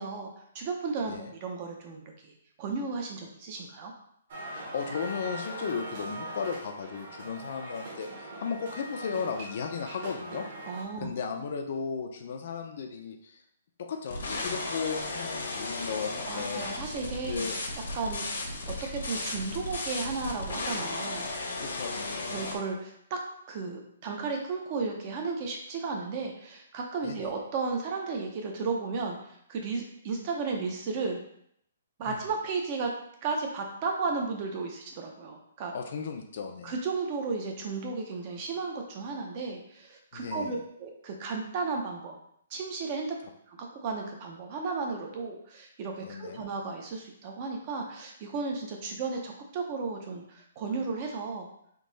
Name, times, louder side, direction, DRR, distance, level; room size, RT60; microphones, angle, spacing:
voice 1, 0.0-3.9 10.7-11.1 16.3-17.5 17.9-18.3 18.9-21.3 22.3-23.2 23.5-29.2 29.5-31.2 32.0-32.9 33.2-35.7 36.6-42.2 42.5-43.2 43.5-51.5, right 4 dB, 25° right, 2 dB, 0.5 m, -34 dB
sound 1, 4.3-10.8, right 1 dB, 40° right, 1.1 m, -41 dB
voice 2, 4.5-10.5 11.0-13.4 13.8-16.7 17.2-17.6 21.6-22.4 27.0-27.3 32.1-32.2 35.7-36.7 40.1-40.6 46.0-46.4, left 6 dB, 40° left, 4 dB, 0.4 m, -35 dB
sound 2, 14.1-22.6, left 2 dB, 80° left, 1.1 m, -35 dB
3.7 x 2.7 x 3.9 m, 0.70 s
hypercardioid pair, 175°, 0 cm